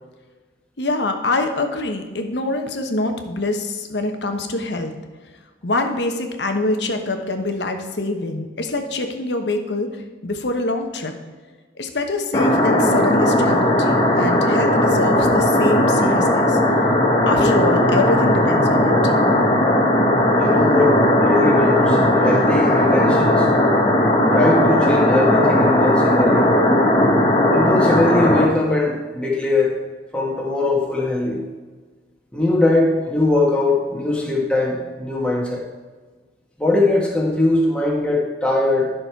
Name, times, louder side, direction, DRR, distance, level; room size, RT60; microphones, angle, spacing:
voice 1, 0.8-4.9 5.6-9.9 10.2-11.1 11.8-16.6 17.3-19.1, left 2 dB, 75° left, 5 dB, 1.1 m, -24 dB
sound 1, 12.3-28.5, left 1 dB, 25° left, 1.1 m, -17 dB
voice 2, 20.4-23.5 24.3-26.5 27.5-29.8 30.1-31.4 32.3-35.7 36.6-38.9, left 2 dB, 5° left, -2 dB, 1.5 m, -20 dB
11.5 x 6.4 x 4.6 m, 1.4 s
head